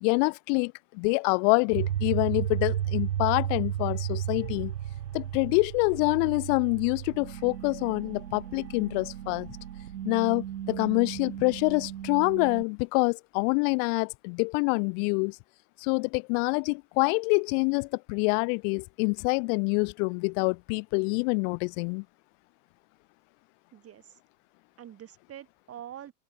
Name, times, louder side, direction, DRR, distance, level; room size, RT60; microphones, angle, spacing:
voice 1, 0.0-4.7 5.1-9.5 10.1-15.4 15.8-22.0, left 40 dB or more, 50° left, 1.6 m, -26 dB
sound 1, 1.7-12.6, right 11 dB, 90° right, 3.4 m, -34 dB
voice 2, 23.7-24.2 24.8-26.1, right 11 dB, 30° right, 4.8 m, -45 dB
hypercardioid pair, 130°, 49 cm